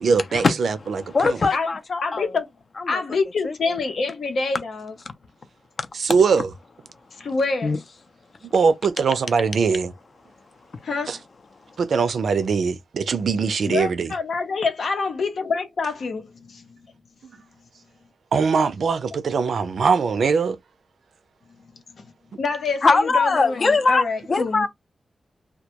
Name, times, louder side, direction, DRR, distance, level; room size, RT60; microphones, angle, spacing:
voice 1, 0.0-1.4 5.9-6.5 8.5-9.9 11.1-11.2 11.8-14.1 18.3-20.6, right 5 dB, 85° right, 0.4 m, -21 dB
voice 2, 1.1-2.3 2.8-3.0 3.4-3.5 7.6-7.8 22.8-24.0 24.3-24.7, left 3 dB, 50° left, 0.5 m, -20 dB
voice 3, 2.0-2.5 2.9-4.9 7.2-7.8 10.8-11.2 13.7-16.8 22.4-24.6, left 4 dB, 85° left, 0.8 m, -26 dB
2.2 x 2.2 x 2.8 m
wide cardioid pair, 115°, 0 cm